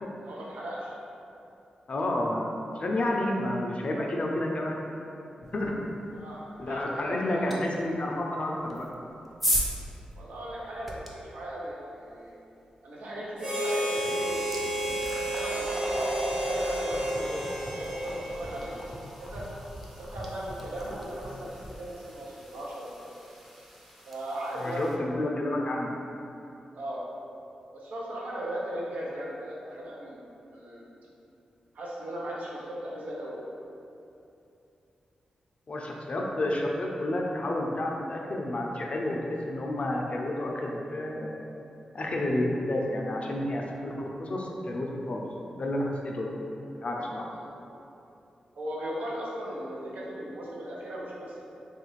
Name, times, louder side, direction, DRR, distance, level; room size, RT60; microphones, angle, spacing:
voice 1, 0.2-0.9 6.1-7.6 10.1-12.4 12.8-14.6 15.3-18.9 19.2-19.4 20.0-23.1 24.0-25.1 26.8-27.0 27.7-30.2 30.5-30.9 31.7-33.4 47.3-47.5 48.6-51.4, right 1 dB, 80° right, -5 dB, 0.6 m, -37 dB
voice 2, 1.9-4.8 5.5-5.7 6.6-8.8 24.6-25.9 35.7-41.3 41.9-45.2 45.6-46.3 46.8-47.3, left 1 dB, 50° left, -1 dB, 0.4 m, -30 dB
sound 1, 7.5-7.6 8.7-11.1 13.4-13.5 14.0-25.0, equal, 5° right, 0.5 m, -37 dB
Harmonica, 13.4-18.9, right 1 dB, 45° right, 1.1 m, -31 dB
3.1 x 2.4 x 3.1 m, 2.8 s
cardioid pair, 55°, 3 cm